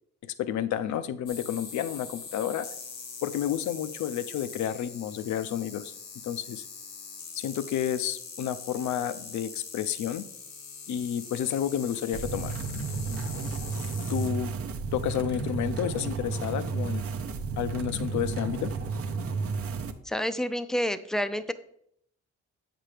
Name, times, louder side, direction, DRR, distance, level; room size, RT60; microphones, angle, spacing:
voice 1, 0.4-2.7 3.2-5.9 6.2-6.6 7.3-10.2 10.9-12.6 14.1-14.5 14.9-17.0 17.6-18.7, left 10 dB, 70° left, 13 dB, 0.6 m, -30 dB
sound 1, 1.3-14.3, left 5 dB, 85° left, 1.5 m, -43 dB
sound 2, 12.1-19.9, right 4 dB, 50° right, 0.7 m, -32 dB
voice 2, 20.0-21.5, equal, ahead, 12 dB, 0.4 m, -29 dB
8.1 x 5.9 x 3.3 m, 0.71 s
cardioid pair, 90°, 30 cm